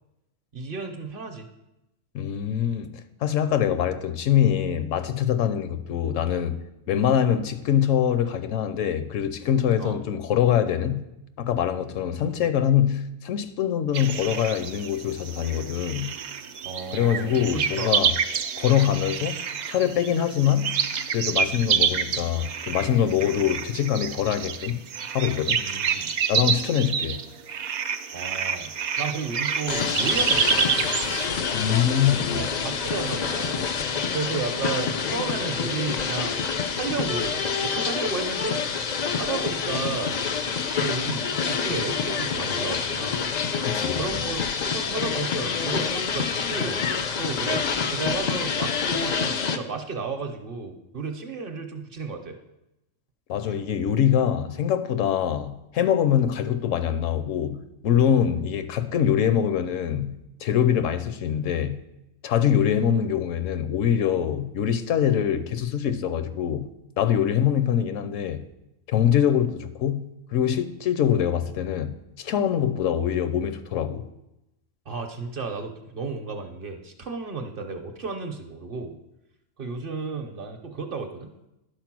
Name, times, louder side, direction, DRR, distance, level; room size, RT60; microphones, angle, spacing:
voice 1, 0.5-1.5 6.9-7.0 9.8-10.0 12.1-12.5 16.6-18.0 21.5-21.7 25.6-26.1 28.1-30.9 32.3-33.7 34.1-36.4 36.7-38.6 39.2-40.2 40.7-43.2 43.9-46.9 47.2-52.4 53.5-53.6 74.9-79.0 79.6-81.3, right 4 dB, 50° right, 0.9 m, -33 dB
voice 2, 2.1-6.6 6.9-11.0 11.4-16.1 16.9-18.1 18.6-19.4 19.7-20.8 21.1-24.8 25.1-25.6 26.3-27.2 31.5-32.5 43.6-44.0 53.3-61.8 62.2-66.7 67.0-68.4 68.9-74.1, left 9 dB, 80° left, 1.0 m, -24 dB
sound 1, 13.9-31.3, right 7 dB, 75° right, 0.4 m, -28 dB
sound 2, 29.7-49.6, left 6 dB, 55° left, 0.4 m, -27 dB
11.0 x 4.4 x 6.0 m
omnidirectional pair, 1.3 m